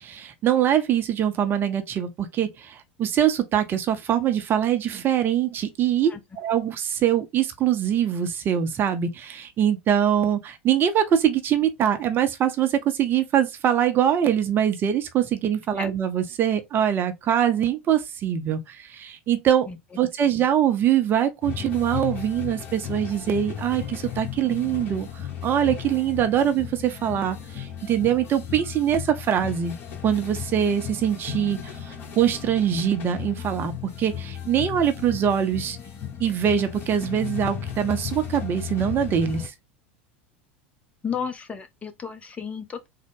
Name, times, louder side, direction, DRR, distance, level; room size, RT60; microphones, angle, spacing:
voice 1, 0.0-19.7 20.0-25.1 25.4-29.7 30.0-33.7 34.0-35.8 36.2-39.5, right 9 dB, 35° right, 0.6 m, -23 dB
sound 1, 21.4-39.5, left 9 dB, 40° left, 1.3 m, -35 dB
voice 2, 41.0-42.9, left 6 dB, 20° left, 0.7 m, -33 dB
3.7 x 2.1 x 3.5 m
figure-of-eight pair, 80°, 6 cm